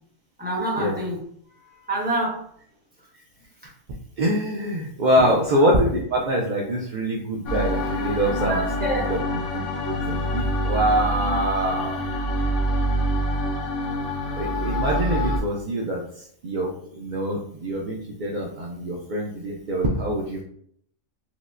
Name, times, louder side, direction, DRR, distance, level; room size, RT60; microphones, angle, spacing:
voice 1, 0.4-1.2 1.5-2.4 3.6-3.7 5.2-5.3 8.4-9.1, right 1 dB, 10° right, -5 dB, 1.0 m, -27 dB
voice 2, 4.2-8.7 9.1-9.2 9.5-12.0 14.4-20.4, equal, 65° right, -1 dB, 0.4 m, -24 dB
sound 1, 7.5-15.4, equal, 75° left, 1.0 m, -26 dB
4.5 x 2.1 x 2.5 m, 0.65 s
omnidirectional pair, 1.3 m